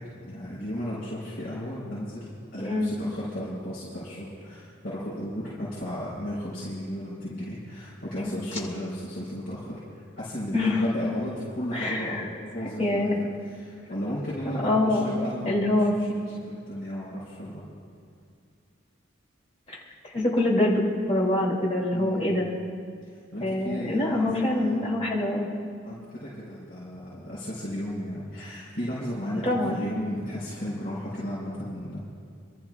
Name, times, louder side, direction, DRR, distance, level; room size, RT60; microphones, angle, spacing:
voice 1, 0.2-17.6 21.9-22.3 23.0-24.8 25.8-32.0, equal, 55° left, -10 dB, 4.5 m, -35 dB
voice 2, 2.5-3.0 8.2-8.6 10.5-10.9 11.7-12.2 12.8-13.2 14.4-15.0 15.4-15.9 19.7-19.8 20.0-22.5 23.4-25.5 29.4-29.8, left 1 dB, 30° left, -5 dB, 2.9 m, -25 dB
28.0 x 13.5 x 2.5 m, 2.3 s
head